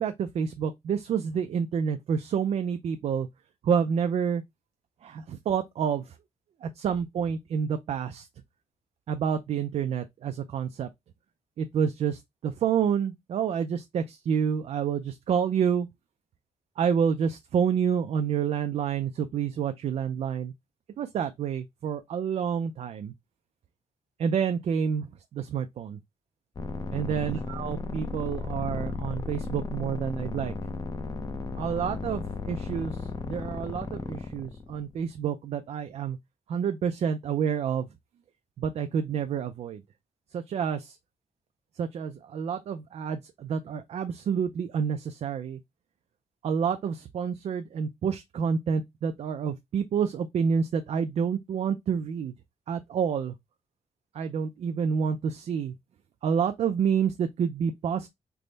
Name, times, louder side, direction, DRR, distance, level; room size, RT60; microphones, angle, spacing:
voice 1, 0.0-3.3 3.6-4.4 5.0-6.2 6.6-8.3 9.1-10.9 11.6-15.9 16.8-20.5 21.0-23.1 24.2-26.0 26.9-30.5 31.6-36.2 36.5-37.9 38.6-39.8 40.3-41.0 41.8-45.6 46.4-52.3 52.7-53.3 54.1-55.7 56.2-58.1, right 7 dB, 60° right, 0.4 m, -28 dB
sound 1, 26.6-35.0, left 3 dB, 30° left, 0.5 m, -35 dB
3.4 x 2.1 x 3.8 m
wide cardioid pair, 150°, 12 cm